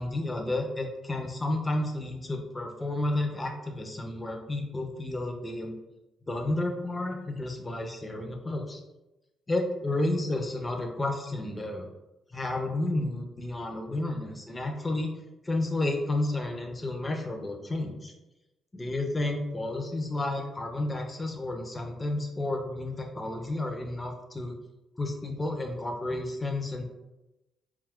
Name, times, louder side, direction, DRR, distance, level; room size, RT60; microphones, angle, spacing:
voice 1, 0.0-5.7 6.3-8.8 9.5-11.9 12.3-15.1 15.4-18.1 18.7-24.6 25.0-26.8, left 2 dB, 20° left, 3 dB, 0.4 m, -31 dB
2.5 x 2.2 x 3.5 m, 0.98 s
cardioid pair, 90°, 0 cm